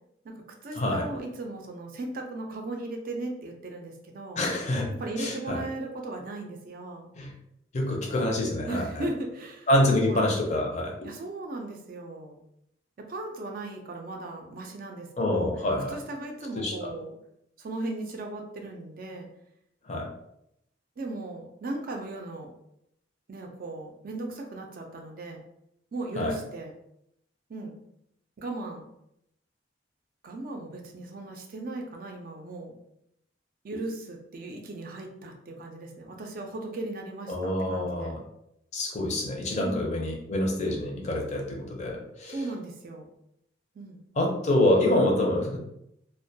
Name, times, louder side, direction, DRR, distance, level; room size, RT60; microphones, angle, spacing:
voice 1, 0.2-4.4 4.9-7.1 8.7-9.7 10.0-10.2 11.0-12.4 13.0-15.5 15.9-17.2 17.6-19.3 21.0-22.5 23.3-25.4 25.9-26.7 27.5-27.7 28.4-28.8 30.2-32.7 33.6-38.1 39.6-39.9 42.3-43.1 43.7-44.0, right 2 dB, 50° right, 2 dB, 0.4 m, -37 dB
voice 2, 4.4-4.9 5.2-5.6 7.2-7.3 7.7-9.0 9.7-10.9 15.2-15.9 16.6-16.7 19.9-20.1 26.2-26.3 37.3-38.2 38.7-42.4 44.2-45.6, left 1 dB, 40° left, 0 dB, 0.5 m, -26 dB
2.2 x 2.1 x 2.6 m, 0.78 s
head